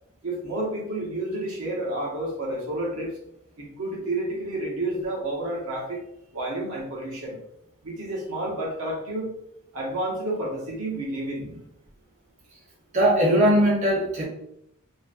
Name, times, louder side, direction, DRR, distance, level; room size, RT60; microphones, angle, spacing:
voice 1, 0.2-3.2 3.6-6.0 6.3-7.4 7.8-9.3 9.7-11.5, right 1 dB, 80° right, -2 dB, 0.7 m, -30 dB
voice 2, 12.9-14.2, equal, 30° right, -5 dB, 0.6 m, -20 dB
2.5 x 2.1 x 2.4 m, 0.77 s
head